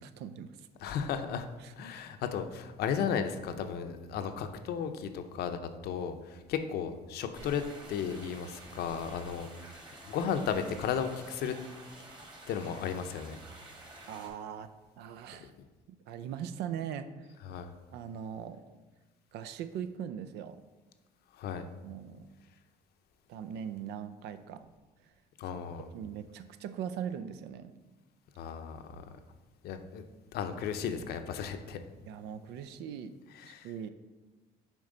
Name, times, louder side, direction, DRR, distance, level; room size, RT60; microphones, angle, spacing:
voice 1, 0.0-0.7 1.6-1.7 14.1-14.7 15.0-15.5 15.9-17.3 17.9-18.6 19.3-20.6 21.8-22.3 23.3-24.7 25.9-27.7 32.1-33.2 33.4-33.9, right 8 dB, 85° right, 12 dB, 0.5 m, -40 dB
voice 2, 0.8-1.5 1.8-7.6 7.9-9.7 10.1-11.5 12.5-13.4 17.5-17.7 21.4-21.7 25.4-25.9 28.4-28.8 29.6-30.0 30.3-31.8 33.4-33.7, left 7 dB, 70° left, 8 dB, 0.6 m, -34 dB
sound 1, 7.3-14.3, right 2 dB, 25° right, 1.7 m, -50 dB
7.3 x 4.5 x 3.8 m, 1.2 s
cardioid pair, 110°, 17 cm